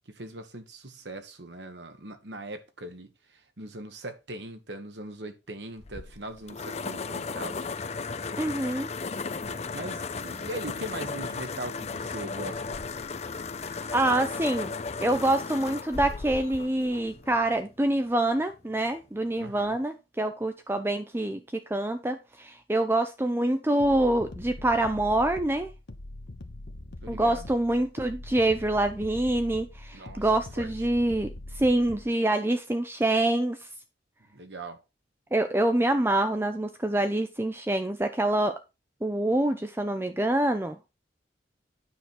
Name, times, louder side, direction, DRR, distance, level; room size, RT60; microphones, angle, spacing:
voice 1, 0.1-7.6 9.7-12.8 19.4-19.8 27.0-27.5 29.9-30.3 30.6-30.7 34.3-34.8, right 2 dB, 75° right, 1.6 m, -40 dB
sound 1, 5.8-17.6, left 4 dB, 35° left, 0.5 m, -35 dB
voice 2, 8.4-8.9 13.9-14.7 15.0-25.7 27.1-33.6 35.3-38.6 39.0-40.8, right 1 dB, 15° right, 0.6 m, -26 dB
sound 2, 23.8-32.1, left 1 dB, 70° left, 1.0 m, -42 dB
9.3 x 6.3 x 4.3 m
head